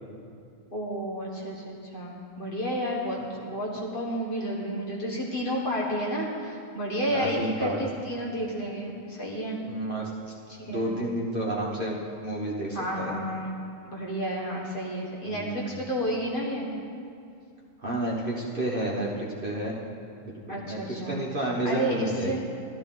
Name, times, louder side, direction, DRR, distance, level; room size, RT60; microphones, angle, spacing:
voice 1, 0.7-9.6 10.5-10.9 12.7-13.5 13.8-16.7 20.5-21.3 21.6-22.4, equal, 40° left, -3 dB, 1.8 m, -31 dB
voice 2, 7.1-7.8 9.7-10.1 10.7-12.0 12.2-13.2 15.3-15.8 17.8-19.8 20.2-22.4, right 1 dB, 45° right, -3 dB, 1.3 m, -30 dB
13.0 x 12.5 x 3.8 m, 2.5 s
omnidirectional pair, 1.4 m